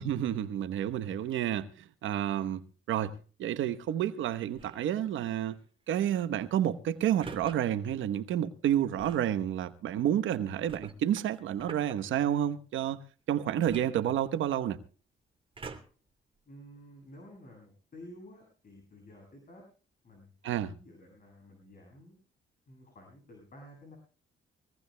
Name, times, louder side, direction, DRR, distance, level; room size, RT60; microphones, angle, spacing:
voice 1, 0.0-1.7 2.0-5.6 5.9-13.0 13.3-14.8 20.4-20.7, right 10 dB, 75° right, 1.1 m, -30 dB
sound 1, 4.5-4.9 7.2-7.6 9.0-9.3 10.7-12.0 13.6-14.6 15.5-16.1 16.8-16.9, right 4 dB, 25° right, 2.8 m, -46 dB
voice 2, 16.5-19.7 20.0-22.2 22.7-24.0, left 1 dB, 45° left, 7.4 m, -52 dB
23.0 x 17.0 x 2.2 m
cardioid pair, 90°, 20 cm